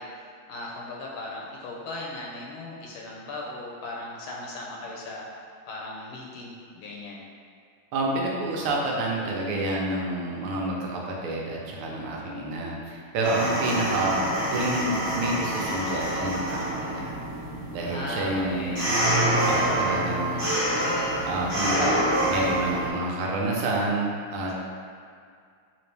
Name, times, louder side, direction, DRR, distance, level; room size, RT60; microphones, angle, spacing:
voice 1, 0.0-7.2 17.8-18.9, left 2 dB, 80° left, -3 dB, 1.5 m, -38 dB
voice 2, 7.9-17.1 17.7-19.0 19.5-20.5 21.3-24.5, right 2 dB, 85° right, -2 dB, 1.6 m, -29 dB
sound 1, 13.2-22.9, right 1 dB, 40° right, 1.2 m, -27 dB
4.2 x 2.9 x 3.3 m, 2.2 s
omnidirectional pair, 2.3 m